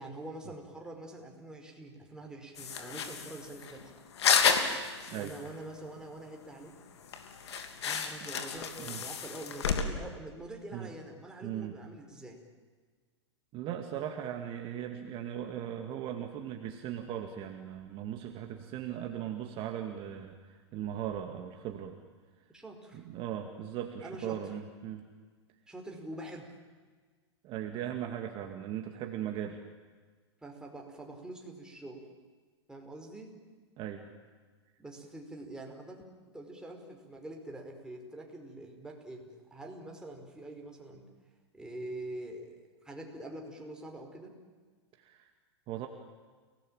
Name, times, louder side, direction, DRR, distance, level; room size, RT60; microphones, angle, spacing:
voice 1, 0.0-3.8 5.1-6.7 7.8-12.4 22.5-23.0 24.0-24.4 25.7-26.5 30.4-32.1 32.7-33.3 34.8-41.1 41.5-44.3, right 1 dB, 5° right, 1 dB, 5.2 m, -45 dB
sound 1, 2.6-5.5 5.8-5.9 6.3-6.4 6.7-6.8 7.0-9.8, left 6 dB, 70° left, 3.2 m, -31 dB
voice 2, 11.4-11.7 13.5-22.0 22.9-25.0 27.4-29.6 33.8-34.1 45.0-45.3 45.7-45.9, right 10 dB, 40° right, 4 dB, 2.3 m, -38 dB
29.5 x 19.0 x 9.1 m, 1.5 s
hypercardioid pair, 110°, 14 cm